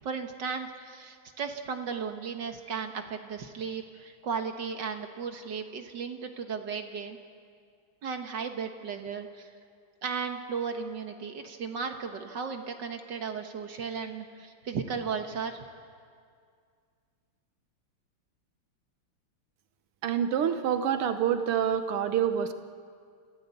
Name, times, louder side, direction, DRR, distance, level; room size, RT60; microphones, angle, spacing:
voice 1, 0.0-7.2 8.0-9.5 10.0-15.6, right 6 dB, 60° right, 5 dB, 1.9 m, -35 dB
voice 2, 20.0-22.5, right 8 dB, 85° right, 9 dB, 2.0 m, -27 dB
28.0 x 15.5 x 8.3 m, 2.1 s
omnidirectional pair, 2.4 m